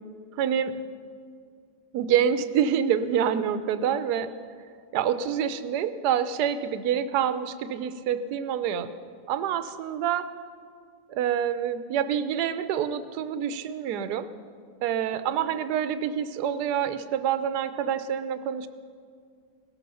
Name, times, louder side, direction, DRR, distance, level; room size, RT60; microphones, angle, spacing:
voice 1, 0.4-0.8 1.9-4.3 4.9-8.9 9.3-10.3 11.1-14.3 14.8-18.7, right 8 dB, 70° right, 12 dB, 1.2 m, -27 dB
17.5 x 13.0 x 5.6 m, 2.1 s
omnidirectional pair, 2.0 m